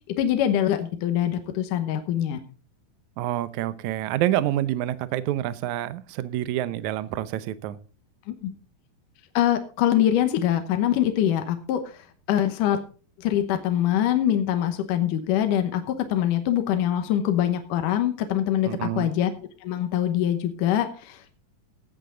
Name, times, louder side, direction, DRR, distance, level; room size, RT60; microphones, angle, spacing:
voice 1, 0.1-2.4 8.3-8.5 9.3-12.8 13.2-19.3 19.6-21.3, left 11 dB, 70° left, 7 dB, 2.5 m, -24 dB
voice 2, 3.2-7.8 18.7-19.1, right 13 dB, 75° right, 15 dB, 1.9 m, -27 dB
16.5 x 9.0 x 3.9 m, 0.38 s
omnidirectional pair, 4.2 m